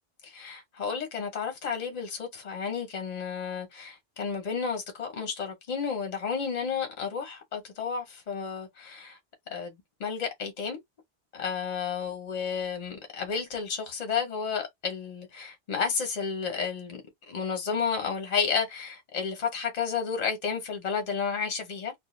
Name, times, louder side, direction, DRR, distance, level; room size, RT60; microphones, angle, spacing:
voice 1, 0.2-9.2 9.5-9.7 10.0-10.8 11.3-17.0 17.3-21.9, left 6 dB, 45° left, 0.7 m, -32 dB
2.2 x 2.0 x 2.9 m
omnidirectional pair, 1.1 m